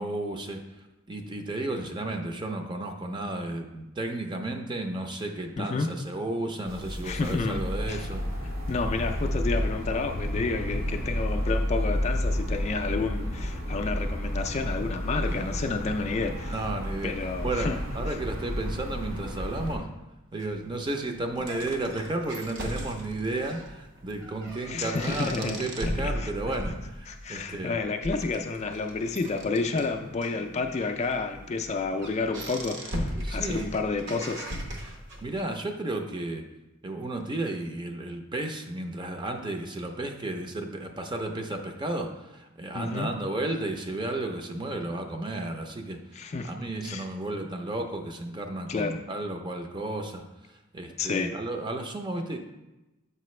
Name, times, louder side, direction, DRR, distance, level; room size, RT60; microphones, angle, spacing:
voice 1, 0.0-8.2 15.3-15.4 16.5-17.1 17.4-19.9 20.3-27.8 33.1-33.7 35.2-36.4 36.8-50.2 50.7-52.4, right 2 dB, 20° right, 4 dB, 0.5 m, -33 dB
voice 2, 5.6-5.9 7.0-7.6 7.9-8.1 8.7-16.5 17.0-17.8 24.7-25.6 26.0-26.3 27.1-34.5 42.7-43.1 46.2-46.5 46.8-47.0 48.7-49.0 51.0-51.3, left 4 dB, 30° left, 5 dB, 0.3 m, -30 dB
sound 1, 6.7-19.8, equal, 75° right, 1.9 m, -31 dB
sound 2, 20.4-35.4, equal, 60° right, 0.8 m, -38 dB
6.6 x 4.9 x 3.1 m, 1.0 s
head